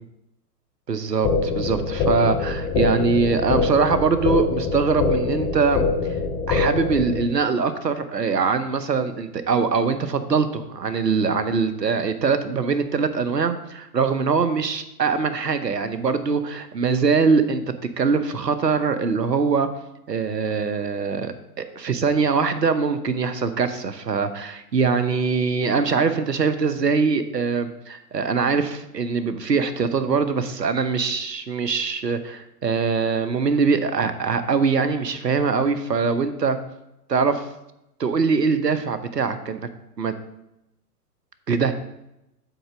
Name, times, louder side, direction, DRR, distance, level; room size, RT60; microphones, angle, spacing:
voice 1, 0.9-5.8 6.5-17.6 18.0-19.7 20.1-36.6 37.1-37.5 38.0-39.6 40.0-40.1 41.5-41.7, right 5 dB, 90° right, 11 dB, 0.9 m, -22 dB
sound 1, 1.2-7.2, left 4 dB, 15° left, 0.5 m, -24 dB
7.9 x 3.8 x 6.2 m, 0.86 s
figure-of-eight pair, 110°, 48 cm